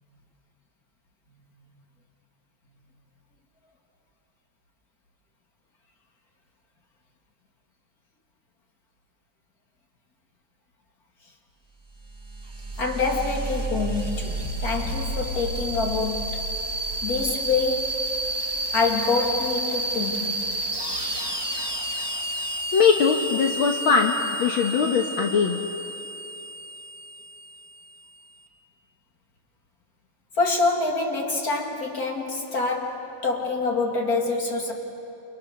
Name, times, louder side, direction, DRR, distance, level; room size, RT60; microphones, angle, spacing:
sound 1, 11.9-28.3, right 1 dB, 10° right, 1.9 m, -31 dB
voice 1, 12.8-16.4 17.0-18.0 18.7-20.5 30.4-34.7, left 3 dB, 45° left, 1 dB, 3.0 m, -26 dB
voice 2, 22.7-25.6, left 5 dB, 70° left, 2 dB, 2.0 m, -21 dB
29.5 x 28.5 x 6.6 m, 3.0 s
omnidirectional pair, 2.3 m